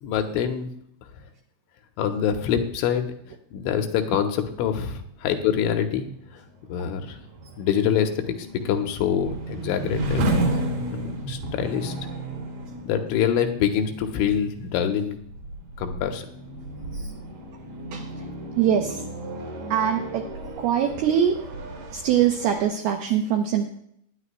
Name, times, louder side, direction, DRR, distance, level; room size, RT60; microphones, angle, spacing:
voice 1, 0.0-0.7 2.0-3.1 3.5-6.1 6.3-6.4 6.7-7.2 7.6-10.2 10.9-11.9 12.9-15.2 15.8-16.3, left 8 dB, 80° left, 5 dB, 3.3 m, -25 dB
sound 1, 5.6-22.7, right 1 dB, 50° right, 3.9 m, -33 dB
voice 2, 18.6-19.0 19.7-20.3 20.6-21.4 21.9-23.7, right 9 dB, 80° right, 3 dB, 2.3 m, -22 dB
20.0 x 10.5 x 2.3 m, 0.71 s
omnidirectional pair, 5.6 m